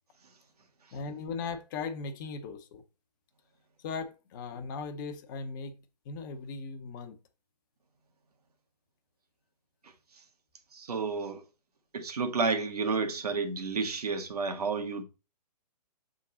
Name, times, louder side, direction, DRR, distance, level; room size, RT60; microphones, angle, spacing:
voice 1, 0.9-2.8 3.8-5.8 6.1-7.2, left 4 dB, 30° left, 0.8 m, -38 dB
voice 2, 10.7-11.4 11.9-15.0, right 4 dB, 65° right, 1.5 m, -31 dB
7.4 x 3.8 x 4.1 m
figure-of-eight pair, 125°, 21 cm